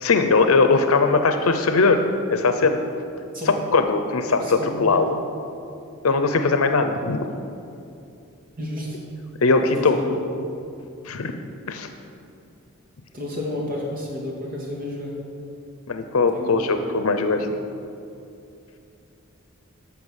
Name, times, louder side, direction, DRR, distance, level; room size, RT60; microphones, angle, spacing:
voice 1, 0.0-2.8 3.7-5.2 6.0-7.3 9.4-10.0 11.0-11.4 11.7-11.9 15.9-17.5, left 3 dB, 80° left, 7 dB, 0.7 m, -20 dB
voice 2, 4.4-4.9 8.6-9.0 9.6-10.2 13.1-15.2 16.3-16.8 17.4-17.5, left 1 dB, 40° right, -2 dB, 2.1 m, -31 dB
14.0 x 5.9 x 7.3 m, 2.6 s
head